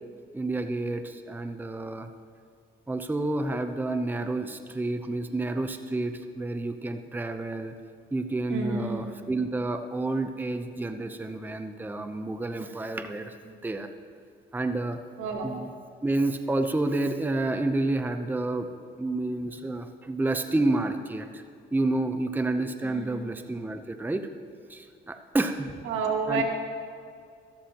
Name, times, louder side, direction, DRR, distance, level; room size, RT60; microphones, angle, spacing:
voice 1, 0.3-2.1 2.9-7.7 8.1-13.9 14.5-15.0 15.4-15.7 16.0-18.7 19.0-21.4 21.7-24.3 24.7-25.7 26.3-26.4, right 2 dB, 10° right, 7 dB, 0.6 m, -29 dB
voice 2, 8.5-9.0 15.2-15.5 22.8-23.1 25.8-26.4, right 4 dB, 85° right, 0 dB, 1.9 m, -29 dB
13.5 x 13.0 x 2.9 m, 2.3 s
cardioid pair, 90°, 20 cm